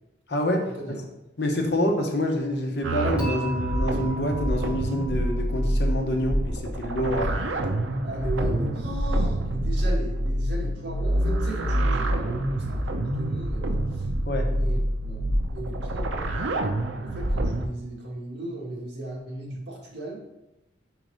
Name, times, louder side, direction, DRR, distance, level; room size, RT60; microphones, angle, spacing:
voice 1, 0.3-1.0 1.4-7.4 14.2-14.5, left 1 dB, 60° left, 2 dB, 1.0 m, -27 dB
sound 1, 2.8-17.7, right 1 dB, 85° right, 0.6 m, -26 dB
Dishes pots and pans / Chink clink, 3.2-6.3, right 2 dB, 5° right, 2.0 m, -39 dB
voice 2, 8.0-14.1 14.5-16.3 17.0-20.2, right 1 dB, 70° right, -3 dB, 1.8 m, -36 dB
4.8 x 4.6 x 5.3 m, 0.93 s
head